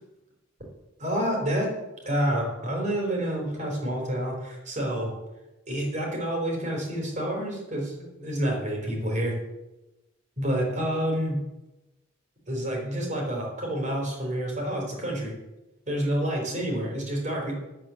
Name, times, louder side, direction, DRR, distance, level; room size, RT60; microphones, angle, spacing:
voice 1, 1.0-1.7 2.0-5.1 5.7-9.3 10.4-11.4 12.5-15.3 15.9-17.5, equal, 40° right, 0 dB, 4.2 m, -28 dB
9.6 x 8.9 x 7.1 m, 1.0 s
head